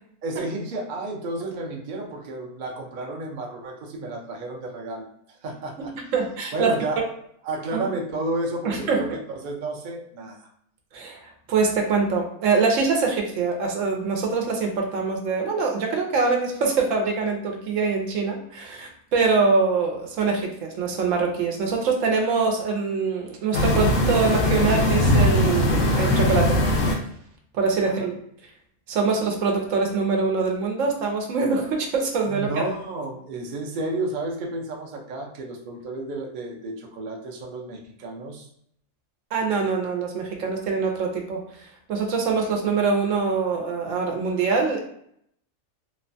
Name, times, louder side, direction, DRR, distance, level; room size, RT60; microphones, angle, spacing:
voice 1, 0.2-5.1 5.4-5.9 6.5-7.0 7.4-10.5 27.8-28.1 32.3-38.5, right 2 dB, 55° right, 0 dB, 0.6 m, -31 dB
voice 2, 6.1-6.7 7.7-7.8 8.6-9.0 10.9-11.2 11.5-26.6 27.5-28.1 28.9-32.6 39.3-41.4 41.9-44.8, right 4 dB, 90° right, 1 dB, 1.0 m, -24 dB
sound 1, 23.5-26.9, left 1 dB, 85° left, 1.0 m, -20 dB
3.0 x 2.1 x 2.6 m, 0.69 s
omnidirectional pair, 1.3 m